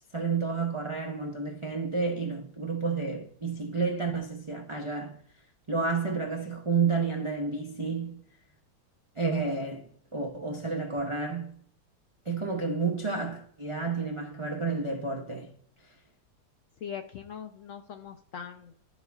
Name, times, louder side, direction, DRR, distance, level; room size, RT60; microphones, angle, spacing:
voice 1, 0.1-5.2 5.7-8.2 9.2-11.5 12.3-15.5, right 4 dB, 50° right, 0.3 m, -30 dB
voice 2, 16.8-18.7, left 8 dB, 70° left, 0.7 m, -41 dB
12.0 x 4.0 x 2.3 m
omnidirectional pair, 1.8 m